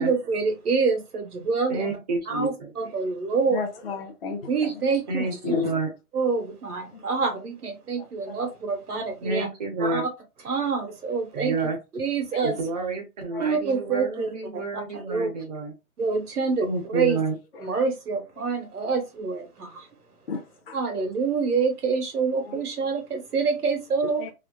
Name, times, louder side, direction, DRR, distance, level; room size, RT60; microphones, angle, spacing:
voice 1, 0.0-1.9 2.3-3.6 4.5-5.2 6.1-9.5 9.8-10.0 10.4-11.5 11.9-12.5 13.4-14.3 14.7-15.3 16.0-17.2 17.6-19.9 20.7-24.3, right 5 dB, 90° right, 1.4 m, -26 dB
voice 2, 1.7-2.7 5.1-5.9 9.2-10.0 11.3-11.8 12.4-15.7 16.6-17.3, right 3 dB, 30° right, 0.8 m, -29 dB
voice 3, 3.5-4.8 5.2-5.7 6.9-7.4 8.0-8.5 8.9-9.0 12.3-12.4 13.3-13.4 17.1-17.2 17.5-17.9 20.3-20.8 22.4-22.6 24.0-24.3, left 4 dB, 45° left, 0.4 m, -36 dB
3.2 x 2.3 x 2.3 m
hypercardioid pair, 155°, 45 cm